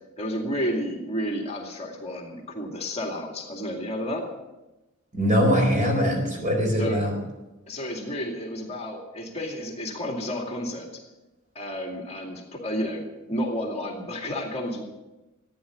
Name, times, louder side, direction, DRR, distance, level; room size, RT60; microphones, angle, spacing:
voice 1, 0.2-4.3 6.8-7.0 7.7-10.9 11.5-14.8, equal, 30° left, 1 dB, 2.3 m, -31 dB
voice 2, 5.1-7.1, equal, 35° right, 2 dB, 4.3 m, -22 dB
15.0 x 9.9 x 8.3 m, 1.0 s
head